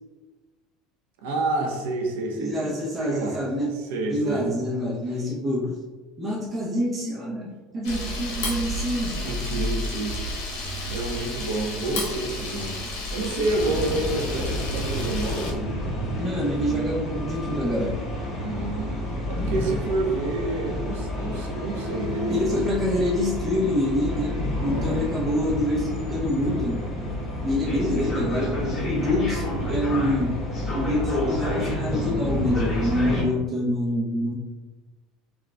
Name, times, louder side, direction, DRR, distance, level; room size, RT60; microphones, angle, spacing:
voice 1, 1.2-3.4 3.9-4.6 9.2-10.2 10.5-12.8 13.1-15.8 18.4-19.0 19.3-22.7 24.7-25.1, right 2 dB, 80° right, 1 dB, 0.6 m, -29 dB
voice 2, 2.3-3.7 4.1-5.7 6.2-9.2 16.2-18.0 22.3-26.8 27.4-28.6 28.9-30.3 30.7-34.3, left 1 dB, 35° right, -2 dB, 0.6 m, -26 dB
Camera, 7.8-15.5, left 1 dB, 70° left, 0.8 m, -31 dB
sound 1, 13.4-33.2, left 1 dB, 45° left, 1.4 m, -29 dB
3.8 x 2.3 x 2.2 m, 1.3 s
supercardioid pair, 95°, 0 cm